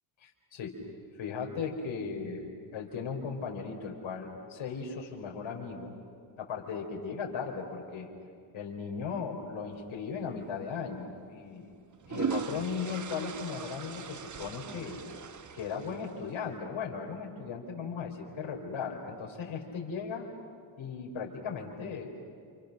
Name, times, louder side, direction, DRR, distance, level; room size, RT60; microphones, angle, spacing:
voice 1, 0.2-0.8 1.2-5.9 6.4-8.1 8.5-11.7 12.1-15.0 15.5-20.3 20.8-22.2, left 5 dB, 70° left, 1 dB, 3.9 m, -37 dB
sound 1, 10.4-10.6 11.7-16.3, right 6 dB, 35° right, 1.2 m, -39 dB
28.5 x 28.5 x 6.5 m, 2.2 s
supercardioid pair, 65°, 50 cm